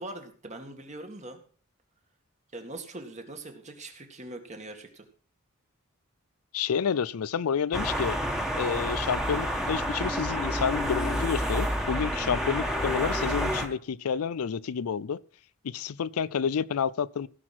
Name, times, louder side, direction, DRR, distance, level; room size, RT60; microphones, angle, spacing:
voice 1, 0.0-1.4 2.5-5.1 12.1-12.4, right 2 dB, 35° right, 2.1 m, -42 dB
voice 2, 6.5-8.2 8.6-15.2 15.6-17.3, left 7 dB, 85° left, 0.4 m, -29 dB
sound 1, 7.7-13.7, equal, 5° right, 1.6 m, -29 dB
16.5 x 6.1 x 6.0 m
head